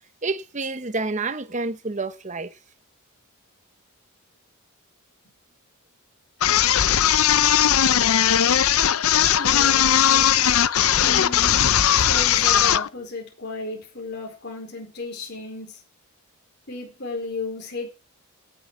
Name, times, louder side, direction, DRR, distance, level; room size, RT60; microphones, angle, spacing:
voice 1, 0.2-2.6, right 3 dB, 30° right, 1.0 m, -29 dB
sound 1, 6.4-12.9, left 9 dB, 75° left, 0.7 m, -18 dB
voice 2, 9.4-10.7 11.0-11.7 12.0-15.8 16.7-17.9, left 3 dB, 50° left, 4.5 m, -34 dB
17.0 x 6.8 x 6.2 m
head